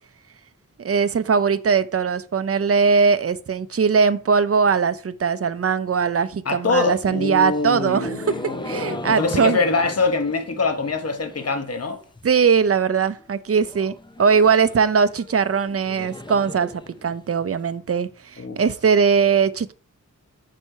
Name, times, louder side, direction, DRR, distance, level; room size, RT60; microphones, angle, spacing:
voice 1, 0.8-8.3 8.7-9.6 12.2-13.9 14.2-16.7 17.0-19.7, right 6 dB, 45° right, 0.5 m, -20 dB
voice 2, 6.5-12.0 18.4-18.6, left 3 dB, 50° left, 0.9 m, -24 dB
sound 1, 6.7-11.7 12.0-12.5 12.8-12.9 13.2-13.3 13.6-17.6, left 2 dB, 15° left, 0.5 m, -38 dB
6.4 x 4.2 x 4.5 m
wide cardioid pair, 50°, 32 cm